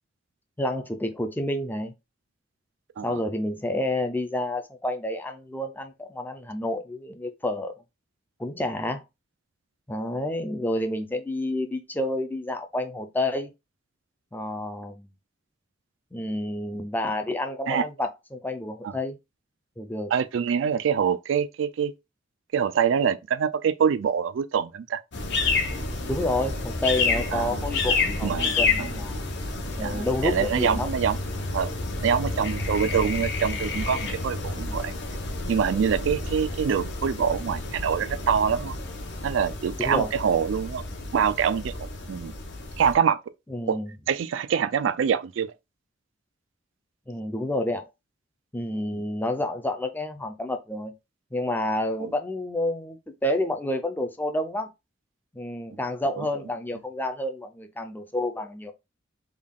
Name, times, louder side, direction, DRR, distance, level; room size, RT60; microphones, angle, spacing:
voice 1, 0.6-1.9 3.0-7.7 8.4-9.0 9.9-13.5 14.3-15.1 16.1-19.2 19.8-20.1 26.1-29.2 29.8-30.9 39.8-40.1 43.5-43.9 47.1-47.9 48.5-50.9 51.3-54.7 55.3-58.7, left 1 dB, 10° left, 0.4 m, -29 dB
voice 2, 20.1-21.9 22.5-25.0 27.3-27.7 28.2-28.9 29.8-31.2 31.5-31.8 32.0-34.9 35.5-38.8 39.2-40.8 41.1-41.7 42.1-42.3 42.8-43.2 43.7-43.8 44.1-45.5 52.0-52.1 56.2-56.3, right 7 dB, 75° right, 0.3 m, -25 dB
sound 1, 25.1-42.9, left 3 dB, 60° left, 0.8 m, -30 dB
3.5 x 2.3 x 3.6 m
head